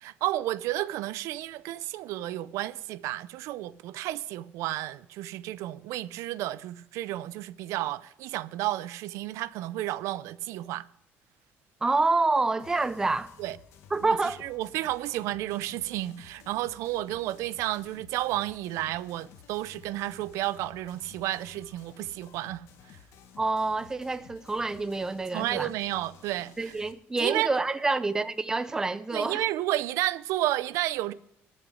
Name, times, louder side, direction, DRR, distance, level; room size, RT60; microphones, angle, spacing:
voice 1, 0.0-10.9 13.4-13.6 14.0-23.0 25.3-26.7 27.2-27.5 29.1-31.1, right 15 dB, 80° right, 0.5 m, -32 dB
voice 2, 11.8-13.3 13.9-14.4 23.4-25.7 26.6-29.4, right 3 dB, 10° right, 0.5 m, -27 dB
sound 1, 12.6-26.9, left 7 dB, 65° left, 1.3 m, -54 dB
13.0 x 6.5 x 6.3 m
cardioid pair, 155°, 5 cm